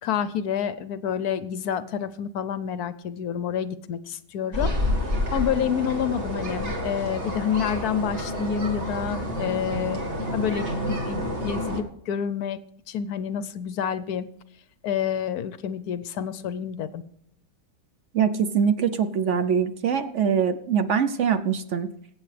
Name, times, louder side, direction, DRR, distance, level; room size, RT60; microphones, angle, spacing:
voice 1, 0.0-4.7 5.3-10.0 10.3-12.6 12.9-14.3 14.8-17.0, left 8 dB, 70° left, 14 dB, 1.0 m, -28 dB
sound 1, 4.5-11.8, left 1 dB, 40° right, 2.3 m, -29 dB
voice 2, 18.1-21.9, right 7 dB, 60° right, 10 dB, 0.8 m, -23 dB
22.0 x 8.6 x 3.3 m, 0.69 s
omnidirectional pair, 2.0 m